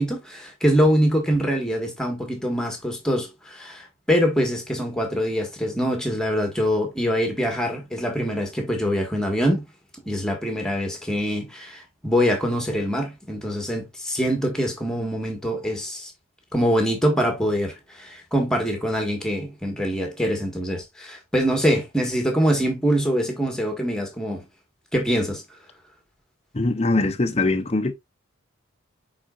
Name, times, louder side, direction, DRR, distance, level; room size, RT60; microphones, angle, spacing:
voice 1, 0.0-9.7 10.0-16.1 16.5-24.4 24.9-25.4, equal, 5° left, 1.6 m, -24 dB
voice 2, 26.5-27.9, left 2 dB, 30° left, 0.7 m, -22 dB
9.1 x 4.2 x 2.4 m
head